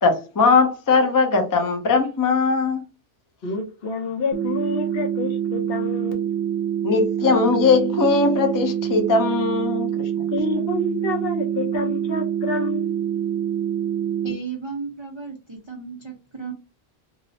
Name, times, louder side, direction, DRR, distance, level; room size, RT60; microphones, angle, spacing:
voice 1, 0.0-2.8 6.8-10.1, left 4 dB, 30° left, 0.3 m, -20 dB
voice 2, 3.4-6.2 10.3-13.1, left 3 dB, 70° left, 0.9 m, -28 dB
sound 1, 4.3-14.3, right 10 dB, 85° right, 0.8 m, -25 dB
voice 3, 14.2-16.5, right 5 dB, 40° right, 0.4 m, -34 dB
2.6 x 2.0 x 2.6 m
omnidirectional pair, 1.1 m